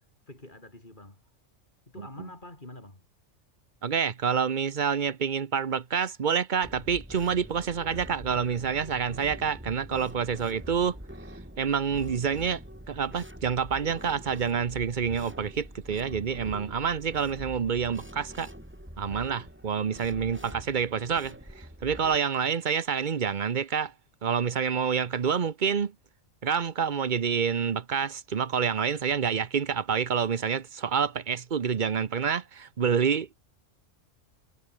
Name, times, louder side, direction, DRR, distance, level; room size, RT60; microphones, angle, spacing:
voice 1, 0.3-1.2 1.9-3.0, left 1 dB, 40° left, 5.2 m, -46 dB
voice 2, 2.0-2.3 3.8-11.0 11.6-12.6 12.9-18.5 19.0-23.9 24.2-25.9 26.4-33.4, right 7 dB, 40° right, 1.0 m, -28 dB
sound 1, 6.6-22.2, equal, 10° right, 6.5 m, -44 dB
omnidirectional pair, 1.3 m